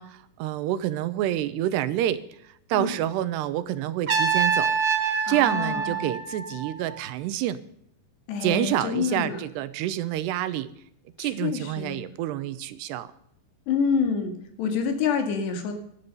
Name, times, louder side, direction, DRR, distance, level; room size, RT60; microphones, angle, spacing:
voice 1, 0.0-2.2 2.7-4.8 5.0-7.6 8.4-10.7 11.2-13.1, right 13 dB, 80° right, 13 dB, 2.9 m, -28 dB
Trumpet, 4.1-7.0, right 6 dB, 60° right, 0.9 m, -26 dB
voice 2, 5.3-6.1 8.3-9.4 11.2-12.0 13.7-14.3 14.6-15.7, left 6 dB, 80° left, 6 dB, 4.3 m, -27 dB
18.0 x 12.5 x 5.5 m, 0.72 s
omnidirectional pair, 4.8 m